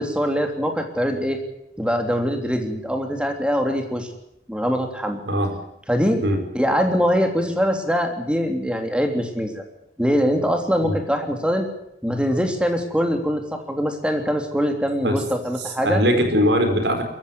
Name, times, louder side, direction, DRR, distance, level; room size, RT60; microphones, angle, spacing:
voice 1, 0.0-1.4 1.8-4.1 4.5-5.2 5.9-6.2 6.5-9.6 10.0-11.7 12.0-16.0, equal, 5° right, 5 dB, 3.2 m, -23 dB
voice 2, 15.8-17.0, equal, 75° right, 7 dB, 4.8 m, -20 dB
22.5 x 15.0 x 9.7 m, 0.81 s
head